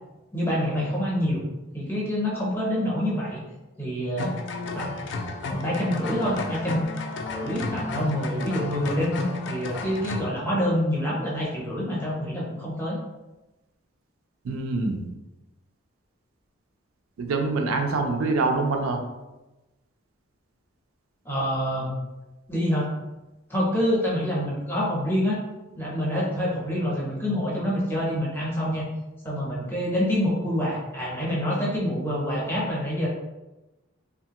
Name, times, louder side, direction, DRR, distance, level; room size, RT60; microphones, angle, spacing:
voice 1, 0.3-1.5 1.7-3.4 3.8-4.3 4.7-4.9 5.5-6.8 7.3-9.1 9.5-13.0 21.2-22.0 22.5-22.9 23.5-25.4 25.8-28.9 29.2-33.1, equal, 10° left, -5 dB, 0.6 m, -26 dB
sound 1, 4.2-10.3, left 3 dB, 55° left, 0.3 m, -32 dB
voice 2, 14.4-15.1 17.2-19.0, right 3 dB, 85° right, 4 dB, 0.4 m, -25 dB
2.8 x 2.3 x 2.8 m, 1.0 s
head